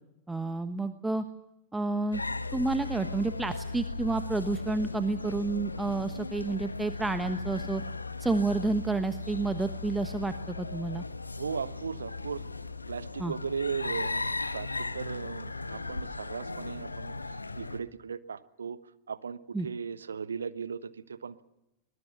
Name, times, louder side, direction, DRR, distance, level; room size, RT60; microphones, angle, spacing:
voice 1, 0.3-1.2 1.7-2.2 2.5-7.8 8.2-11.0 13.2-13.3 19.5-19.7, right 3 dB, 10° right, 10 dB, 1.2 m, -30 dB
sound 1, 2.1-17.8, left 3 dB, 80° left, 1.0 m, -37 dB
voice 2, 11.4-12.4 12.9-18.8 19.1-21.4, right 6 dB, 70° right, 14 dB, 1.1 m, -37 dB
23.0 x 20.5 x 7.1 m, 0.89 s
figure-of-eight pair, 90°, 0 cm